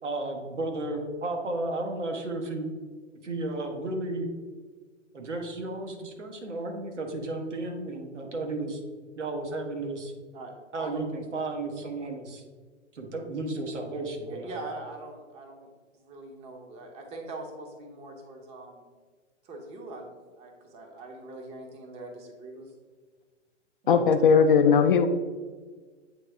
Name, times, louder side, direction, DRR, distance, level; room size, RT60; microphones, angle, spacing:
voice 1, 0.0-2.7 3.2-4.3 5.1-8.8 9.2-10.1 10.7-12.4 12.9-14.6 23.8-24.1, right 2 dB, 75° right, 2 dB, 1.2 m, -33 dB
voice 2, 10.3-11.0 14.3-15.7 15.9-18.8 19.4-22.7, right 2 dB, 15° right, 2 dB, 0.7 m, -42 dB
voice 3, 23.9-25.1, left 6 dB, 45° left, 8 dB, 0.4 m, -19 dB
8.4 x 3.3 x 3.4 m, 1.5 s
figure-of-eight pair, 115°, 37 cm